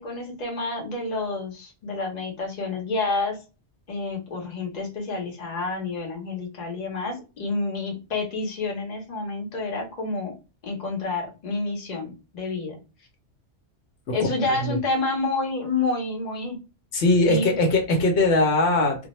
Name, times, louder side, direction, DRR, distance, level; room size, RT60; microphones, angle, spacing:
voice 1, 0.0-3.4 3.9-10.3 10.6-12.8 14.1-16.6 17.2-17.5, left 3 dB, 40° left, 0.9 m, -29 dB
voice 2, 14.1-14.8 16.9-19.1, left 2 dB, 85° left, 1.0 m, -21 dB
2.2 x 2.1 x 2.9 m
omnidirectional pair, 1.1 m